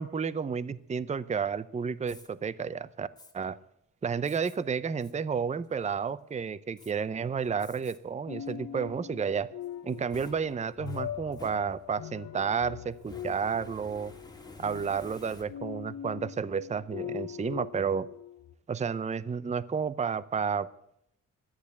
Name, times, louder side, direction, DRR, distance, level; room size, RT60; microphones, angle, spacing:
voice 1, 0.0-3.1 3.3-3.6 4.0-9.5 9.8-14.1 14.6-18.1 18.7-20.7, right 6 dB, 20° right, 18 dB, 0.5 m, -31 dB
Fire, 2.1-2.3 3.2-3.3 4.2-4.6 5.0-5.1 5.6-6.1 6.8-6.9 7.6-8.0 8.5-8.6 9.6-12.1 13.0-15.8, left 2 dB, 10° left, 2.0 m, -51 dB
sound 1, 8.3-18.5, left 9 dB, 70° left, 0.8 m, -42 dB
13.0 x 8.5 x 8.4 m, 0.75 s
cardioid pair, 90°, 32 cm